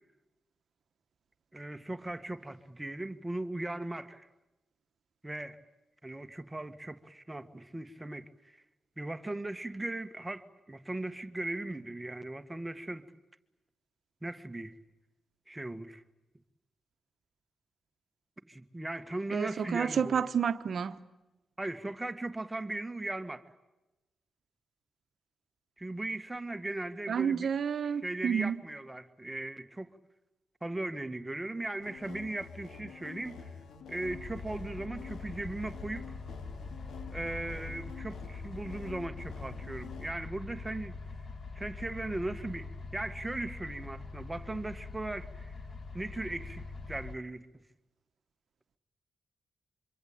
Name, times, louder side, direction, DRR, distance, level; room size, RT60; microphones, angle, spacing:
voice 1, 1.5-4.3 5.2-5.6 6.0-8.6 9.0-13.1 14.2-14.8 15.5-16.0 18.5-20.2 21.6-23.4 25.8-27.5 27.9-29.9 30.6-33.5 33.9-36.1 37.1-41.2 41.5-45.5 45.9-47.5, right 2 dB, 15° right, 1.7 m, -38 dB
voice 2, 19.3-21.0 27.1-28.6, right 7 dB, 65° right, 1.1 m, -30 dB
sound 1, 31.8-40.1, left 6 dB, 80° left, 2.3 m, -48 dB
sound 2, 34.1-47.1, left 3 dB, 45° left, 1.7 m, -43 dB
25.5 x 25.0 x 8.8 m
cardioid pair, 65°, 0 cm